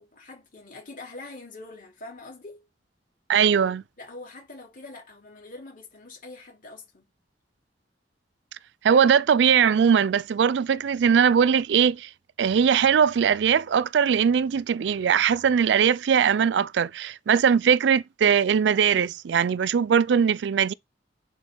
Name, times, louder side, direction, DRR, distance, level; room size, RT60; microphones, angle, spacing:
voice 1, 0.0-2.7 4.0-7.1, left 2 dB, 50° left, 3.7 m, -44 dB
voice 2, 3.3-3.8 8.8-12.1 12.4-20.7, right 7 dB, 70° right, 0.4 m, -20 dB
9.8 x 4.2 x 3.8 m
head